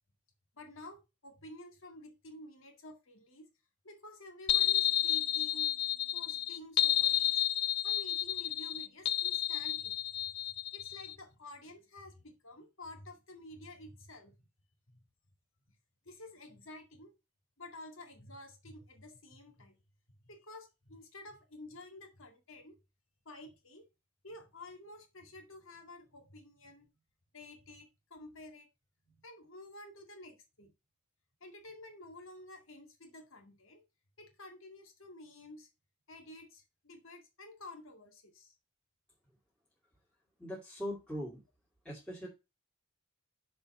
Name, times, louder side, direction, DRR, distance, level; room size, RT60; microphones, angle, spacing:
voice 1, 0.6-3.5 3.8-5.7 6.1-7.4 7.8-10.0 10.7-14.4 14.9-15.0 16.1-17.1 17.6-19.8 20.3-22.8 23.3-23.9 24.2-26.9 27.3-28.7 29.1-30.7 31.4-33.8 34.2-35.7 36.1-38.6, left 1 dB, 70° left, 2.0 m, -51 dB
sound 1, 4.5-11.1, left 12 dB, 50° left, 0.4 m, -31 dB
voice 2, 40.4-41.4 41.8-42.3, equal, 5° left, 2.3 m, -40 dB
6.9 x 4.3 x 5.4 m
head